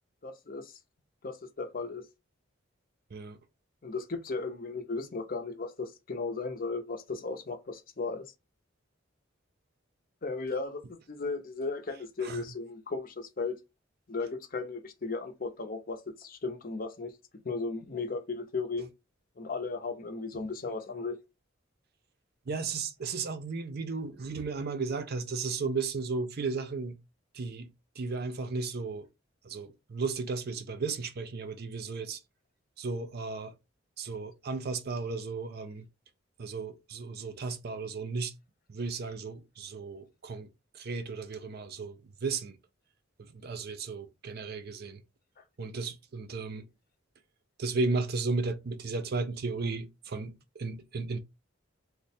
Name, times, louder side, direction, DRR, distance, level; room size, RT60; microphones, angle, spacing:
voice 1, 0.2-0.8 1.2-2.0 3.8-8.3 10.2-13.6 14.1-17.1 17.4-18.9 19.4-21.2, left 3 dB, 45° left, 0.6 m, -36 dB
voice 2, 22.5-27.0 27.3-27.7 28.0-29.1 29.4-32.2 32.8-33.5 34.0-35.9 36.4-38.3 38.7-40.5 40.7-42.6 43.2-45.0 45.6-46.7 47.6-51.2, right 4 dB, 50° right, 0.5 m, -34 dB
3.1 x 2.1 x 4.1 m
head